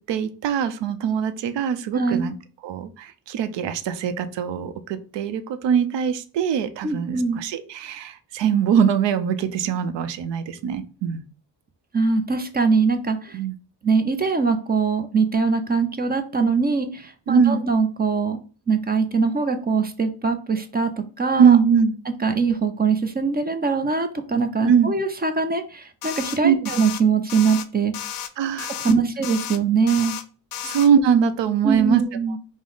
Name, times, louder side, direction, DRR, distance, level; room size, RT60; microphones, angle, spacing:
voice 1, 0.0-2.3 2.6-11.3 13.3-13.5 17.3-17.6 21.4-21.9 24.6-24.9 26.4-26.7 28.4-29.1 30.6-32.0, right 7 dB, 75° right, 10 dB, 0.6 m, -22 dB
voice 2, 1.9-2.3 6.8-7.4 11.9-13.4 13.8-18.4 18.7-20.9 21.2-21.6 22.2-27.9 28.8-30.2 31.6-32.4, right 4 dB, 25° right, 8 dB, 0.4 m, -22 dB
sound 1, 26.0-26.4 26.7-27.0 27.3-27.7 27.9-28.3 28.6-28.9 29.2-29.6 29.9-30.2 30.5-30.9, left 10 dB, 55° left, 0.5 m, -32 dB
5.1 x 2.1 x 3.8 m, 0.37 s
cardioid pair, 140°, 43 cm